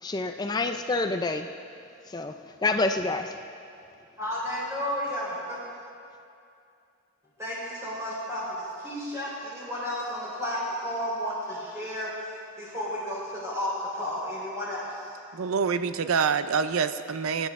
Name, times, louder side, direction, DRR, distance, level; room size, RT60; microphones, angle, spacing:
voice 1, 0.0-1.5 2.1-2.4 2.6-3.3, left 3 dB, 20° left, 7 dB, 0.4 m, -27 dB
voice 2, 4.2-5.6 7.4-12.1 12.6-15.0, equal, 15° right, -8 dB, 3.7 m, -32 dB
voice 3, 15.3-17.5, right 6 dB, 80° right, 11 dB, 0.5 m, -26 dB
23.5 x 9.8 x 3.6 m, 2.5 s
head